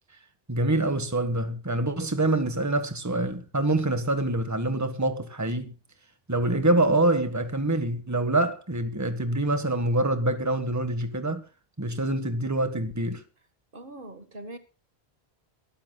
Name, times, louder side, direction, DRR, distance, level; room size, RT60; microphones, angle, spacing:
voice 1, 0.5-5.8 6.3-11.4 11.8-13.2, right 2 dB, 15° right, 1.7 m, -25 dB
voice 2, 13.7-14.6, right 1 dB, 55° right, 1.9 m, -41 dB
23.0 x 13.5 x 2.4 m
omnidirectional pair, 1.1 m